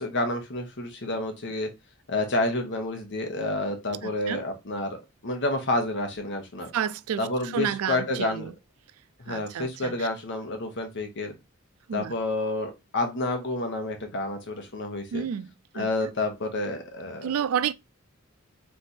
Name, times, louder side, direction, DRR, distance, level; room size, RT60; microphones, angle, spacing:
voice 1, 0.0-1.7 2.1-5.0 5.2-6.7 7.2-8.5 9.2-11.3 11.9-15.2 15.7-17.4, left 2 dB, 55° left, 1.2 m, -29 dB
voice 2, 4.0-4.4 6.7-7.3 7.5-8.5 9.3-10.1 11.9-12.1 15.1-15.5 15.7-15.9 17.2-17.7, right 8 dB, 85° right, 0.4 m, -30 dB
3.4 x 3.1 x 4.1 m
head